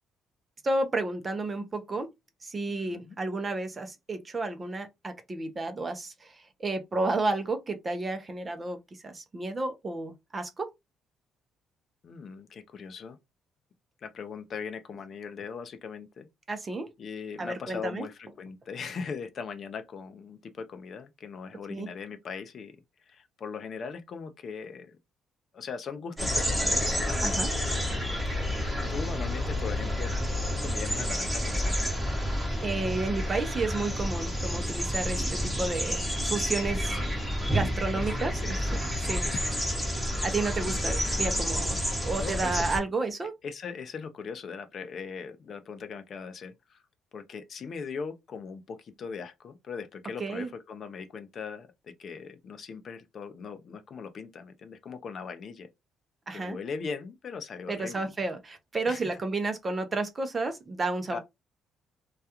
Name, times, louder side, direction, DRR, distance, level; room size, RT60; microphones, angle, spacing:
voice 1, 0.6-2.1 2.4-8.8 9.0-10.7 16.5-16.9 17.4-18.1 21.7-21.9 27.2-27.5 32.6-38.6 39.0-39.2 40.2-43.3 50.2-50.5 56.3-56.6 57.7-61.2, right 3 dB, 25° right, 0.5 m, -32 dB
voice 2, 2.8-3.2 12.0-13.2 14.0-16.3 17.0-22.8 23.1-25.0 25.5-27.5 28.9-30.1 30.5-31.8 36.7-37.2 37.9-38.7 39.2-39.6 40.1-40.4 40.6-41.0 42.2-42.7 43.4-46.8 47.1-55.7 56.3-58.1 58.9-59.2 61.1-61.2, left 5 dB, 45° left, 0.4 m, -40 dB
sound 1, 26.2-42.8, equal, ahead, 1.0 m, -29 dB
2.3 x 2.2 x 2.8 m
cardioid pair, 115°, 0 cm